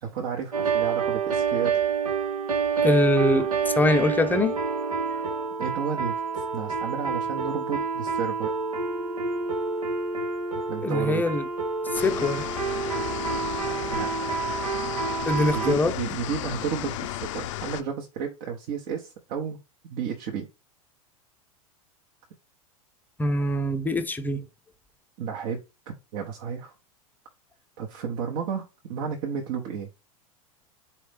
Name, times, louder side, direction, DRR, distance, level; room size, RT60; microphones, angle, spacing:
voice 1, 0.0-1.7 5.6-8.5 10.7-11.3 13.9-14.3 15.5-19.6 19.9-20.5 25.2-26.7 27.8-29.9, right 7 dB, 50° right, 0.9 m, -32 dB
sound 1, 0.5-15.7, right 5 dB, 85° right, 0.9 m, -28 dB
voice 2, 2.8-4.5 10.8-11.4 11.9-12.5 15.3-15.9 23.2-24.4, left 2 dB, 10° left, 0.5 m, -23 dB
sound 2, 11.9-17.8, left 13 dB, 60° left, 0.5 m, -34 dB
4.2 x 3.1 x 3.4 m
hypercardioid pair, 95°, 19 cm